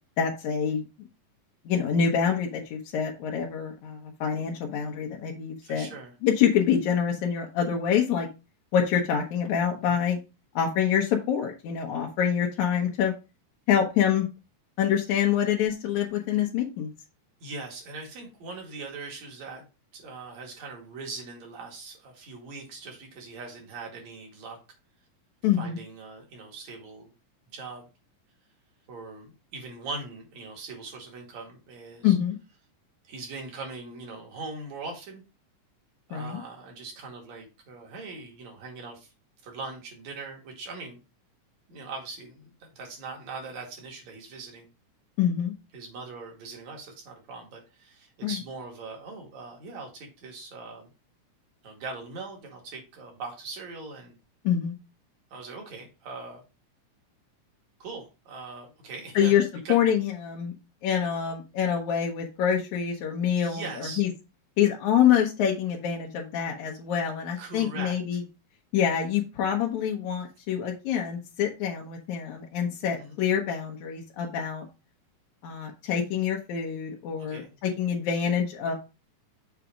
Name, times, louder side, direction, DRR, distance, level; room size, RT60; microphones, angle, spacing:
voice 1, 0.2-0.8 1.7-5.9 6.2-8.3 8.7-10.2 10.6-13.1 13.7-14.3 14.8-16.9 25.4-25.8 32.0-32.4 36.1-36.4 45.2-45.5 48.2-48.4 54.4-54.7 59.2-59.4 59.7-60.5 60.8-64.1 64.6-68.2 68.7-74.7 75.4-78.7, left 8 dB, 70° left, 0 dB, 2.2 m, -26 dB
voice 2, 5.6-6.1 9.9-10.0 17.4-19.7 19.9-24.6 25.6-27.1 27.5-27.9 28.9-32.2 33.1-35.2 36.1-39.1 39.4-41.0 41.7-44.7 45.7-50.9 51.6-54.2 55.3-56.4 57.8-59.3 59.7-59.8 63.4-64.0 67.4-68.0 73.0-73.2 77.2-77.5, right 3 dB, 60° right, 0 dB, 3.3 m, -41 dB
7.0 x 4.1 x 5.0 m, 0.29 s
omnidirectional pair, 3.6 m